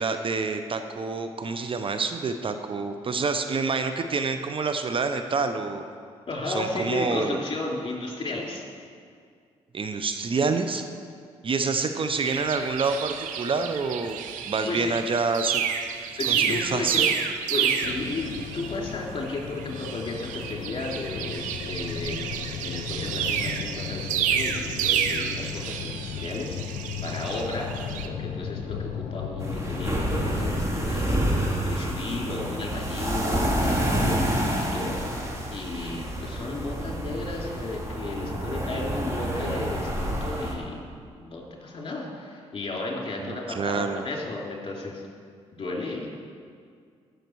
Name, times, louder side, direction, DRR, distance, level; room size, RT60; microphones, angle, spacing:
voice 1, 0.0-5.8 6.5-7.4 9.7-10.8 11.4-14.2 14.5-15.6 16.3-17.1 43.2-44.1, right 4 dB, 45° right, 7 dB, 0.7 m, -27 dB
voice 2, 6.3-8.6 11.6-11.7 14.6-14.9 16.2-17.1 17.5-26.6 27.0-27.7 28.0-45.0 45.5-46.1, left 2 dB, 40° left, -1 dB, 3.0 m, -34 dB
sound 1, 12.2-18.9 19.3-28.1, right 8 dB, 80° right, 0.7 m, -30 dB
sound 2, 17.8-30.6, left 7 dB, 70° left, 0.6 m, -36 dB
sound 3, 29.4-40.5, right 1 dB, 20° right, 2.5 m, -28 dB
14.5 x 6.5 x 4.6 m, 2.2 s
supercardioid pair, 55°, 13 cm